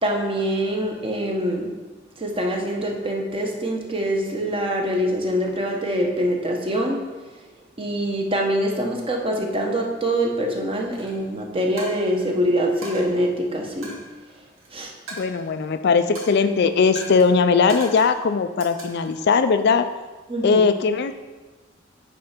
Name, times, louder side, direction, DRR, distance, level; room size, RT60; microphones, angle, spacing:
voice 1, 0.0-1.7 2.2-7.0 7.8-13.9 14.7-14.9 20.3-20.6, equal, 30° right, 1 dB, 1.0 m, -24 dB
Coin (dropping), 10.9-11.1 11.8-12.3 12.8-13.0 13.8-14.7 15.1-15.7 16.2-16.5 17.0-17.3 17.7-18.2 18.6-19.2, right 1 dB, 90° right, 2.0 m, -39 dB
voice 2, 15.1-19.9 20.4-21.1, left 5 dB, 55° left, 9 dB, 0.4 m, -19 dB
8.6 x 3.4 x 5.8 m, 1.3 s
head